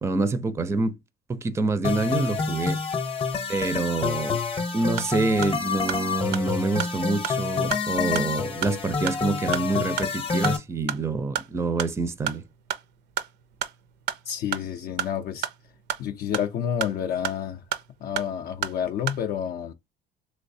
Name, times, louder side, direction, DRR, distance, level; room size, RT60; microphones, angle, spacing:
voice 1, 0.0-1.0 1.3-2.8 3.5-4.4 4.7-12.4, right 3 dB, 15° right, 0.4 m, -26 dB
sound 1, 1.8-10.6, left 5 dB, 30° left, 0.7 m, -28 dB
sound 2, 5.0-19.3, right 10 dB, 70° right, 0.5 m, -35 dB
voice 2, 14.3-15.5 16.0-17.6 18.0-19.7, left 9 dB, 55° left, 0.4 m, -29 dB
3.1 x 3.1 x 2.6 m
cardioid pair, 100°, 19 cm